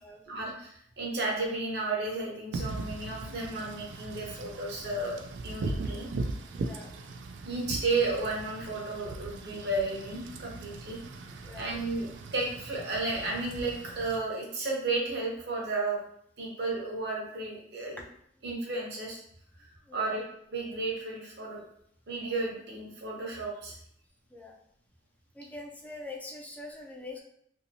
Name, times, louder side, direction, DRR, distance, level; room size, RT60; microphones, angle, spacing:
voice 1, 0.3-6.1 7.4-11.0 11.6-16.0 16.4-18.0 18.4-19.2 19.6-21.6 22.1-23.8, right 3 dB, 65° right, -2 dB, 0.8 m, -33 dB
Wind / Rain, 2.5-14.2, right 3 dB, 90° right, 0.3 m, -39 dB
voice 2, 6.5-6.9 11.4-11.8 19.9-20.2 24.3-24.6 25.3-27.2, left 2 dB, 10° left, -1 dB, 0.4 m, -44 dB
2.7 x 2.6 x 2.7 m, 0.69 s
head